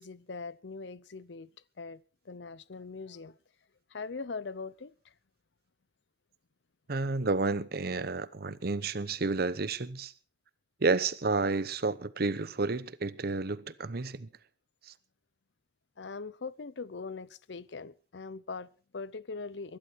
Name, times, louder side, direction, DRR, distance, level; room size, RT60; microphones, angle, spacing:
voice 1, 0.0-1.5 1.8-3.4 3.9-5.1 16.0-19.8, left 4 dB, 85° left, 0.7 m, -41 dB
voice 2, 6.9-10.1 10.8-14.3 14.9-15.0, right 3 dB, 60° right, 0.9 m, -31 dB
22.0 x 11.5 x 4.6 m
head